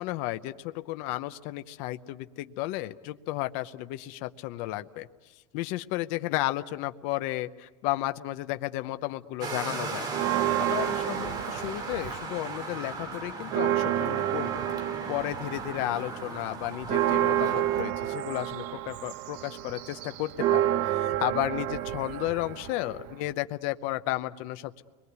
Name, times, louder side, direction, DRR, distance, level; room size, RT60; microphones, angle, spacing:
voice 1, 0.0-5.1 5.5-10.1 10.6-14.6 15.1-24.8, left 16 dB, 55° left, 10 dB, 0.8 m, -33 dB
sound 1, 9.4-17.8, right 3 dB, 30° right, 2.7 m, -37 dB
Church bell, 10.1-12.5 12.8-12.9 13.3-23.3, right 13 dB, 50° right, 0.9 m, -30 dB
30.0 x 22.5 x 8.2 m, 1.2 s
cardioid pair, 175°, 16 cm